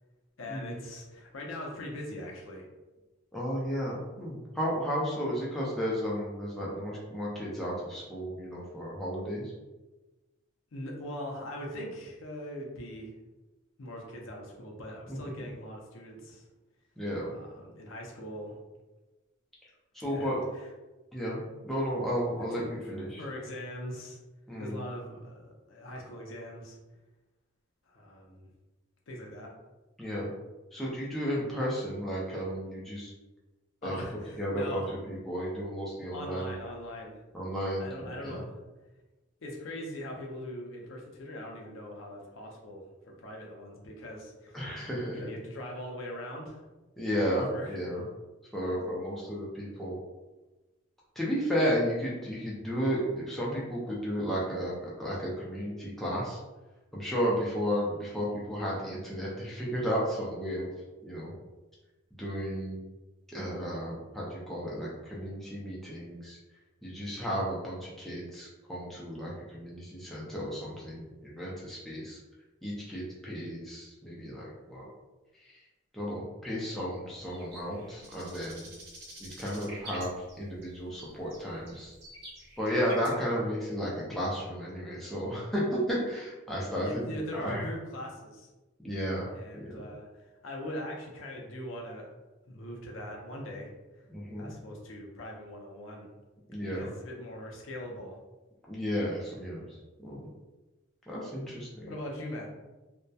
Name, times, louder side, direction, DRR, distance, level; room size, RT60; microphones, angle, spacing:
voice 1, 0.4-2.7 10.7-13.1 13.8-16.5 17.3-18.6 20.1-20.7 22.5-24.2 24.6-26.8 27.9-28.5 29.1-29.5 33.8-34.9 36.1-37.2 37.8-38.5 39.4-44.7 45.1-46.6 47.5-47.8 86.8-88.5 89.3-92.1 92.5-93.7 94.4-96.1 96.6-98.2 101.4-101.5 101.9-102.5, left 1 dB, 75° left, 0 dB, 0.5 m, -41 dB
voice 2, 3.3-9.5 15.1-15.2 17.0-17.3 19.9-20.4 21.1-21.4 21.6-23.2 24.5-24.8 30.0-30.3 30.7-33.1 33.8-34.0 34.4-36.5 37.3-38.4 44.5-45.3 47.0-48.0 48.5-50.0 51.2-56.4 56.9-60.7 61.0-61.3 62.1-62.8 63.3-66.4 66.8-72.2 72.6-74.9 75.9-78.7 79.2-81.9 82.6-87.0 87.3-87.7 88.8-89.3 89.5-89.8 94.1-94.5 96.5-96.9 98.7-99.7 100.0-100.3 101.1-101.9, equal, ahead, -6 dB, 0.4 m, -33 dB
sound 1, 77.2-80.7 81.0-83.1, right 1 dB, 55° right, 0.7 m, -48 dB
2.6 x 2.1 x 2.2 m, 1.1 s
head